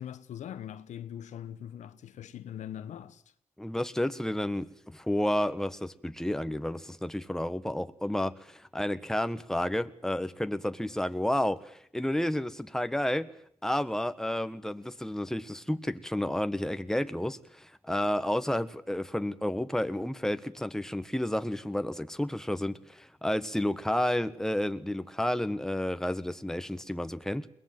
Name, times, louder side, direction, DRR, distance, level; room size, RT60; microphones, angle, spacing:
voice 1, 0.0-3.2, left 10 dB, 80° left, 1.1 m, -41 dB
voice 2, 3.6-13.3 13.6-27.5, left 1 dB, 5° left, 1.4 m, -31 dB
22.5 x 18.5 x 9.1 m
cardioid pair, 60°, 12 cm